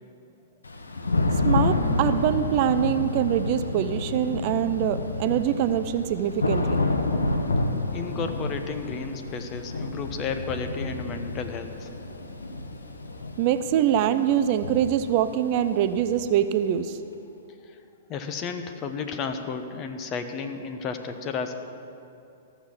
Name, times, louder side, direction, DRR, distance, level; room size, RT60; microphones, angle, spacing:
Thunder / Rain, 0.6-16.4, left 2 dB, 85° left, 0.9 m, -29 dB
voice 1, 1.4-6.8 13.4-17.0, right 10 dB, 45° right, 11 dB, 0.5 m, -24 dB
voice 2, 7.9-11.9 17.6-17.8 18.1-21.6, left 5 dB, 30° left, 7 dB, 1.0 m, -33 dB
14.0 x 6.6 x 7.3 m, 2.7 s
figure-of-eight pair, 110°, 0 cm